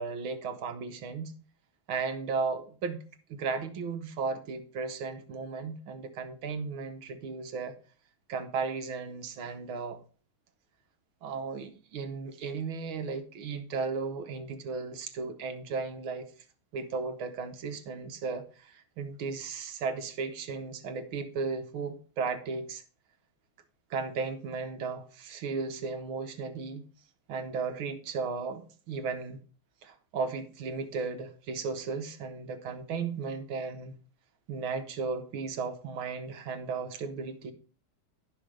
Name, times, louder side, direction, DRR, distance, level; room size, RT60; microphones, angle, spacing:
voice 1, 0.0-1.3 1.9-3.0 3.3-7.8 8.3-10.0 11.2-16.3 16.7-22.8 23.9-26.8 27.3-29.4 29.8-33.9 34.5-37.5, right 4 dB, 75° right, 7 dB, 1.9 m, -35 dB
10.5 x 6.2 x 4.9 m, 0.38 s
omnidirectional pair, 2.3 m